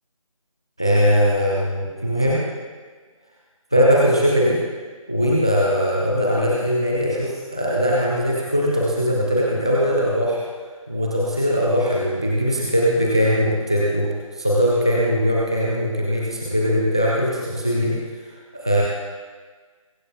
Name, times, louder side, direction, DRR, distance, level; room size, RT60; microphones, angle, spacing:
voice 1, 0.8-2.4 3.7-4.6 5.1-10.4 10.9-18.0 18.5-18.8, equal, 10° left, -4 dB, 0.5 m, -20 dB
22.0 x 14.0 x 2.2 m, 1.5 s
figure-of-eight pair, 160°, 18 cm